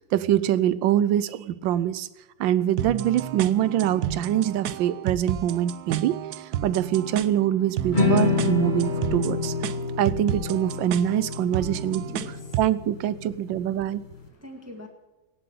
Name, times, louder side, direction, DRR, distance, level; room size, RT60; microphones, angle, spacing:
voice 1, 0.0-2.1 2.4-9.5 10.0-14.0, right 11 dB, 90° right, 16 dB, 1.4 m, -24 dB
sound 1, 2.8-12.8, right 10 dB, 65° right, 1.1 m, -32 dB
sound 2, 7.9-14.2, left 4 dB, 25° left, 1.7 m, -28 dB
voice 2, 12.0-12.6 14.0-14.9, left 1 dB, 10° right, 2 dB, 1.5 m, -44 dB
17.0 x 7.8 x 8.4 m, 1.1 s
omnidirectional pair, 2.0 m